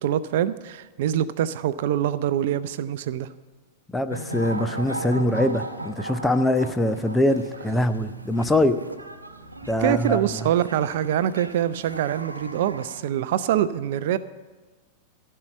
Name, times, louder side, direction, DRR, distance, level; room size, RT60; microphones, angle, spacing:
voice 1, 0.0-3.3 9.8-14.2, right 11 dB, 55° right, 15 dB, 0.5 m, -24 dB
voice 2, 3.9-8.8 9.7-10.2, left 1 dB, 10° left, 10 dB, 0.7 m, -23 dB
sound 1, 4.1-13.0, right 1 dB, 85° right, 0.8 m, -37 dB
14.5 x 5.6 x 9.4 m, 1.3 s
figure-of-eight pair, 95°, 0 cm